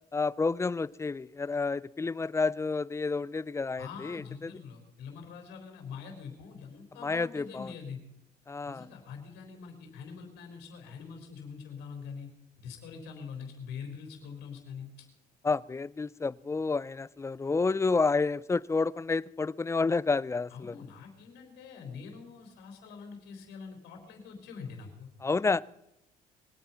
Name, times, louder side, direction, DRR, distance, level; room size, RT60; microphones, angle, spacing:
voice 1, 0.1-4.5 7.0-7.7 8.5-8.9 15.4-20.7 25.2-25.6, left 4 dB, 15° left, 0.4 m, -30 dB
voice 2, 3.8-8.0 8.6-12.3 12.6-14.9 20.5-25.1, left 6 dB, 90° left, 4.0 m, -44 dB
22.5 x 9.2 x 5.8 m
cardioid pair, 110°, 17 cm